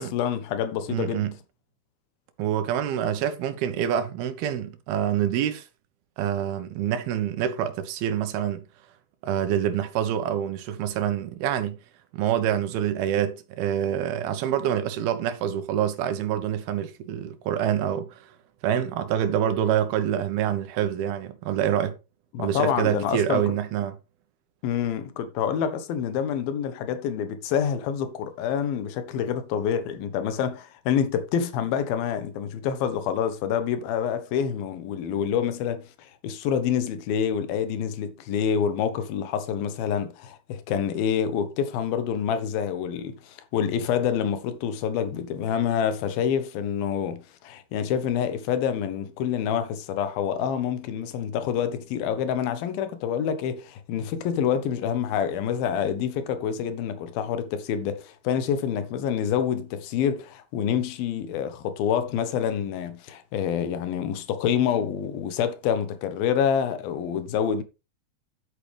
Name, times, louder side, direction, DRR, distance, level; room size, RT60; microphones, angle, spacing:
voice 1, 0.0-1.3 22.3-23.4 24.6-67.6, left 8 dB, 80° left, 3.0 m, -27 dB
voice 2, 0.9-1.3 2.4-5.7 6.2-8.6 9.2-11.8 12.1-18.3 18.6-22.0 22.4-24.0, right 10 dB, 85° right, 3.1 m, -26 dB
11.5 x 8.5 x 3.4 m
omnidirectional pair, 4.3 m